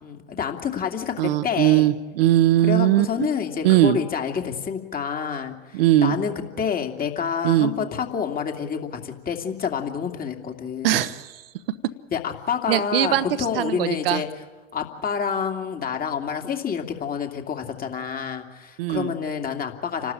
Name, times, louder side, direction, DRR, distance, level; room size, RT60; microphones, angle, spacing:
voice 1, 0.0-1.9 2.6-11.0 12.1-14.3 14.7-20.1, left 7 dB, 30° left, 4 dB, 2.7 m, -28 dB
voice 2, 1.2-3.3 3.6-4.0 5.7-6.2 7.4-7.7 10.8-11.3 12.7-13.3 13.5-14.2 18.8-19.1, right 13 dB, 70° right, 13 dB, 1.1 m, -20 dB
29.5 x 12.5 x 8.9 m, 1.3 s
hypercardioid pair, 80°, 30 cm